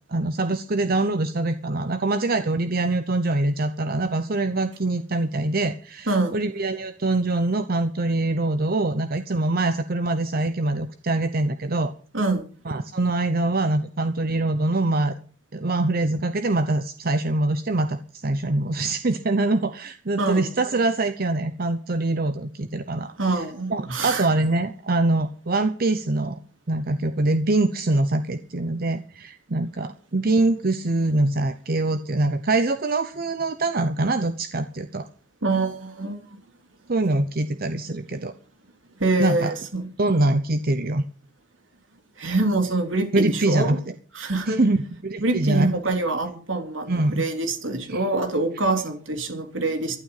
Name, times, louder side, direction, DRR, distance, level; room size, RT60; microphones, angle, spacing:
voice 1, 0.1-11.9 12.7-15.1 15.5-26.4 26.7-35.1 36.9-38.3 39.2-39.5 40.0-41.0 43.1-43.8 44.5-45.7 46.9-47.3 47.9-48.0, right 2 dB, 50° right, 10 dB, 0.9 m, -24 dB
voice 2, 20.2-20.5 23.2-24.3 35.4-36.2 39.0-39.9 42.2-43.8 44.1-44.6 45.2-50.0, right 2 dB, 75° right, 5 dB, 3.4 m, -25 dB
16.5 x 11.5 x 5.7 m, 0.42 s
head